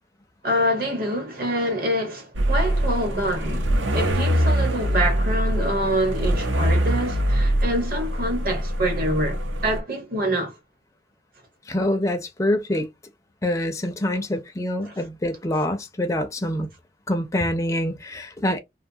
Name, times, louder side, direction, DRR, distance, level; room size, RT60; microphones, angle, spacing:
voice 1, 0.4-10.5 14.9-15.0, equal, 50° right, 1.0 m, -26 dB
sound 1, 2.3-9.8, right 1 dB, 80° right, 0.6 m, -23 dB
voice 2, 11.7-12.9 13.4-16.7 17.1-18.6, left 1 dB, 15° left, 0.4 m, -25 dB
2.6 x 2.3 x 2.6 m
head